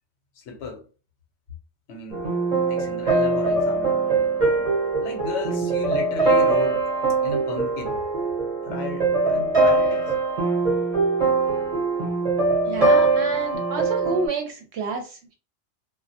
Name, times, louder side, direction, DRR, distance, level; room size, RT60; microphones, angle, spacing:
voice 1, 0.4-0.8 1.9-2.2 2.6-4.0 4.6-4.7 5.0-6.9 7.2-8.0 8.6-10.1, left 4 dB, 70° left, 0.9 m, -34 dB
sound 1, 2.1-14.3, right 3 dB, 40° right, 0.6 m, -22 dB
voice 2, 12.7-15.3, right 4 dB, 70° right, 0.8 m, -29 dB
2.2 x 2.1 x 2.7 m
omnidirectional pair, 1.2 m